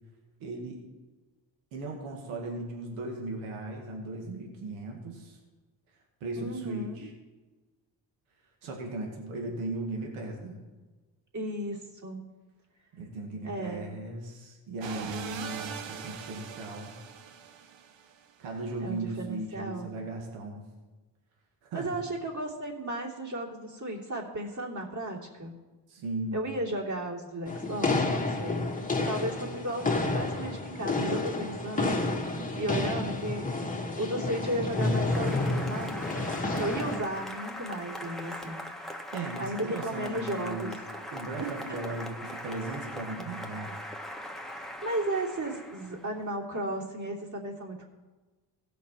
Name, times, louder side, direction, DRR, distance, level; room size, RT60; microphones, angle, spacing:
voice 1, 0.4-0.8 1.7-5.4 6.2-7.1 8.6-10.6 12.9-16.9 18.4-20.6 21.6-21.9 25.9-26.4 39.1-40.8 41.1-43.8, right 2 dB, 90° right, 1 dB, 1.9 m, -37 dB
voice 2, 6.3-7.0 11.3-12.3 13.4-13.9 18.8-19.9 21.7-25.5 26.3-28.6 29.0-32.0 32.5-33.5 34.0-36.1 36.6-38.6 39.4-40.7 41.4-41.8 42.3-42.4 44.6-47.9, right 1 dB, 40° right, -2 dB, 3.1 m, -34 dB
sound 1, 14.8-18.3, right 7 dB, 65° right, 1.0 m, -41 dB
sound 2, 27.5-37.0, left 2 dB, 15° left, 1.5 m, -30 dB
Applause, 34.7-46.2, left 1 dB, ahead, 1.4 m, -41 dB
16.0 x 6.1 x 4.5 m, 1.3 s
supercardioid pair, 55°, 47 cm